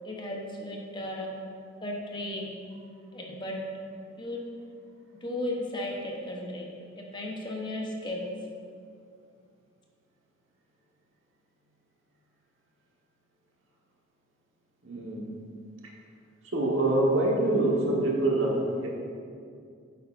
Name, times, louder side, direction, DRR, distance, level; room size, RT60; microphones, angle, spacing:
voice 1, 0.0-1.3 1.8-2.5 3.1-3.6 4.2-4.4 5.2-6.7 7.0-8.2, left 1 dB, 25° left, -1 dB, 1.0 m, -35 dB
voice 2, 14.8-15.3 16.5-18.9, right 1 dB, 75° right, -2 dB, 1.4 m, -25 dB
9.6 x 7.9 x 2.6 m, 2.3 s
head